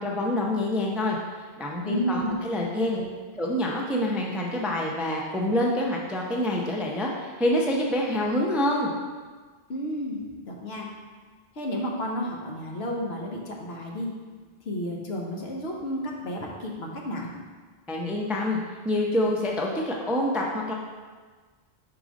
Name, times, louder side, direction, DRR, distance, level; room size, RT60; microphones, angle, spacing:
voice 1, 0.0-1.2 1.6-3.0 3.4-8.9 17.9-18.6 18.8-20.7, left 1 dB, ahead, -2 dB, 0.4 m, -26 dB
voice 2, 1.8-2.4 2.9-3.1 9.7-10.9 11.5-14.1 14.6-17.3, equal, 65° left, -1 dB, 1.1 m, -32 dB
4.8 x 3.9 x 5.1 m, 1.5 s
omnidirectional pair, 1.1 m